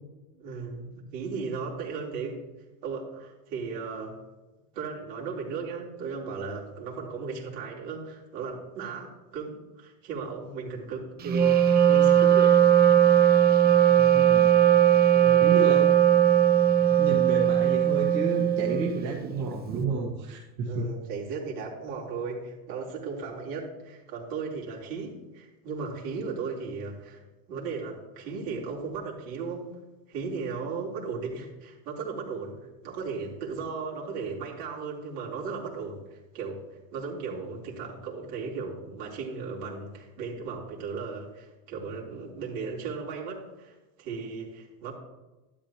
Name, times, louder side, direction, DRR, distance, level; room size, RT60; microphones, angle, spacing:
voice 1, 0.3-2.4 2.8-4.2 4.7-12.6 15.1-15.9 20.7-27.2 27.5-29.7 30.1-44.9, right 5 dB, 75° right, -4 dB, 4.0 m, -36 dB
Wind instrument woodwind instrument, 11.2-19.1, right 10 dB, 20° right, 0.5 m, -19 dB
voice 2, 13.9-14.5 15.4-15.8 16.9-20.9, right 4 dB, 55° right, -4 dB, 2.1 m, -31 dB
12.5 x 11.5 x 3.0 m, 1.1 s
supercardioid pair, 125°, 48 cm